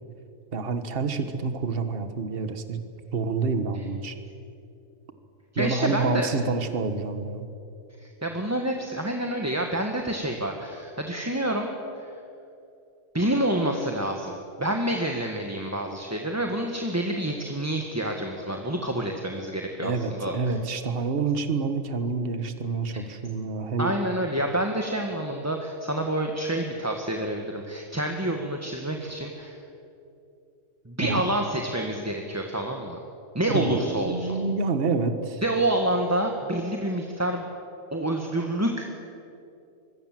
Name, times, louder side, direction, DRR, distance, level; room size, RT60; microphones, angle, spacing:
voice 1, 0.5-2.8 3.1-4.1 5.5-7.4 19.8-23.9 31.0-31.2 33.5-35.4, right 4 dB, 45° right, 9 dB, 1.6 m, -28 dB
voice 2, 5.5-6.3 8.0-11.7 12.0-12.1 13.1-20.5 23.8-29.6 30.8-33.0 33.3-34.4 35.4-37.5 37.9-38.9, right 1 dB, 10° right, 2 dB, 1.5 m, -28 dB
25.0 x 22.5 x 7.6 m, 2.7 s
omnidirectional pair, 1.4 m